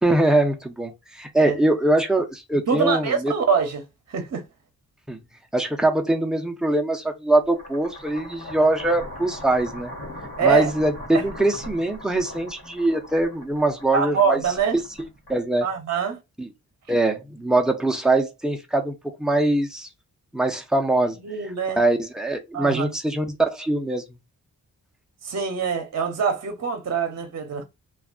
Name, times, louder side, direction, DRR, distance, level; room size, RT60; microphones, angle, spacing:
voice 1, 0.0-3.3 5.1-5.2 5.5-9.9 10.4-14.4 15.3-15.7 16.4-16.5 16.9-19.9 20.3-21.2 21.7-24.0, right 2 dB, ahead, 0.5 m, -22 dB
voice 2, 2.7-3.8 4.1-4.4 10.4-10.7 11.1-11.2 13.9-14.8 15.6-16.2 21.2-21.8 22.5-22.9 25.2-27.6, right 6 dB, 50° right, 0.7 m, -24 dB
sound 1, 7.4-15.7, equal, 85° left, 1.1 m, -39 dB
2.6 x 2.3 x 2.4 m
wide cardioid pair, 105°, 35 cm